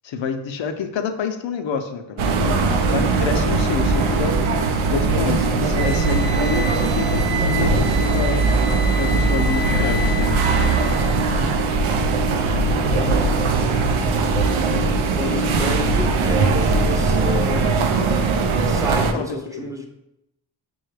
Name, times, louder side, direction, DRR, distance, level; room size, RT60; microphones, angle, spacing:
voice 1, 0.0-2.6 2.9-4.4 4.9-8.4 9.0-10.4 15.3-15.9 19.1-19.7, left 6 dB, 70° left, 7 dB, 0.6 m, -28 dB
sound 1, 2.2-19.1, right 3 dB, 85° right, 0.5 m, -20 dB
sound 2, 5.8-11.2, left 1 dB, 50° right, 0.9 m, -31 dB
voice 2, 12.7-13.4 15.2-17.8 18.7-19.9, left 1 dB, 5° right, 2 dB, 0.7 m, -30 dB
5.5 x 2.3 x 3.2 m, 0.87 s
cardioid pair, 50°, 48 cm